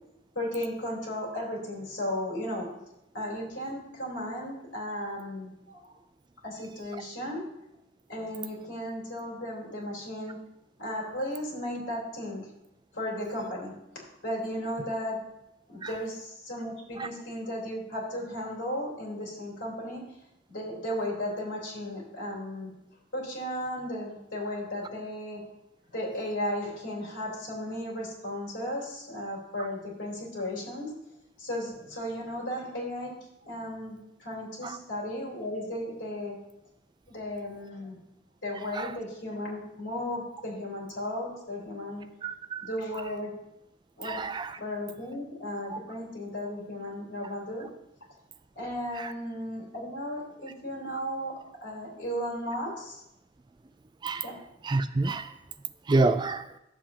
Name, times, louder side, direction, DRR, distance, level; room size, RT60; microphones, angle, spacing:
voice 1, 0.3-2.7 3.1-5.9 6.4-7.4 8.1-10.4 10.8-12.5 12.9-13.7 14.2-15.2 15.7-20.0 20.5-22.7 23.1-25.4 25.9-30.9 31.4-33.1 33.4-36.3 37.1-38.0 38.4-42.0 42.6-43.3 44.0-44.2 44.6-47.7 48.5-51.3 51.6-53.0 54.2-54.3, left 1 dB, 85° left, -4 dB, 3.4 m, -35 dB
voice 2, 42.2-42.7 44.0-44.5 45.7-45.8 49.0-49.1 54.0-54.3 54.6-55.3 55.9-56.5, right 3 dB, 25° right, 10 dB, 0.3 m, -28 dB
11.5 x 7.6 x 2.8 m, 0.86 s
head